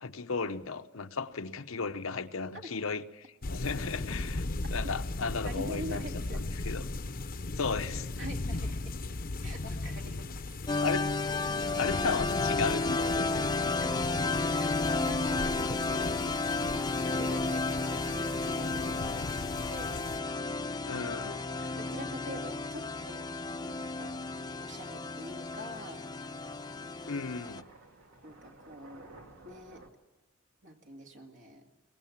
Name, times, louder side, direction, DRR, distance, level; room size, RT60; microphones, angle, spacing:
voice 1, 0.0-6.9 7.6-8.1 10.8-11.1 11.7-13.7 20.8-21.7 27.0-27.6, left 4 dB, 85° left, 8 dB, 0.9 m, -35 dB
sound 1, 3.4-20.2, left 2 dB, 45° left, 0.8 m, -37 dB
voice 2, 5.4-6.4 8.2-9.0 9.4-10.4 13.8-16.2 16.6-19.4 19.7-20.0 21.7-23.3 23.6-24.3 24.6-26.0 28.2-29.1 29.4-29.8 30.6-31.7, equal, 65° right, 3 dB, 2.3 m, -44 dB
sound 2, 10.7-27.6, left 3 dB, 20° left, 0.7 m, -32 dB
sound 3, 24.7-29.9, right 2 dB, 85° right, 2.6 m, -56 dB
22.5 x 19.5 x 7.4 m, 1.2 s
head